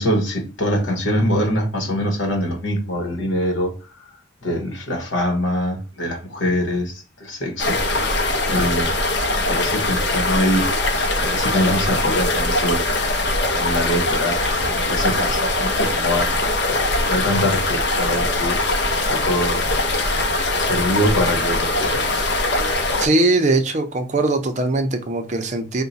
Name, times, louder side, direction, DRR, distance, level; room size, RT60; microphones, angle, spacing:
voice 1, 0.0-3.7 4.4-7.8 8.5-10.7 11.2-12.8 13.5-18.6 19.1-19.6 20.6-22.3, equal, 75° left, 1.1 m, -24 dB
sound 1, 7.6-23.1, left 2 dB, 60° left, 0.7 m, -21 dB
voice 2, 23.0-25.8, right 2 dB, 35° right, 0.5 m, -20 dB
4.6 x 2.2 x 4.0 m
head